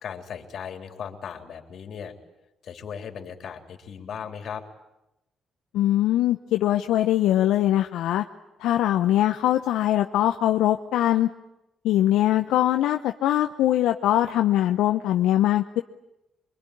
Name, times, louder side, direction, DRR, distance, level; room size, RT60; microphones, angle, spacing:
voice 1, 0.0-2.1 2.6-4.6, left 7 dB, 60° left, 5 dB, 3.5 m, -37 dB
voice 2, 5.7-8.2 8.6-11.3 11.8-15.8, left 13 dB, 85° left, 5 dB, 0.9 m, -22 dB
23.5 x 23.5 x 10.0 m, 0.90 s
cardioid pair, 90°, 0 cm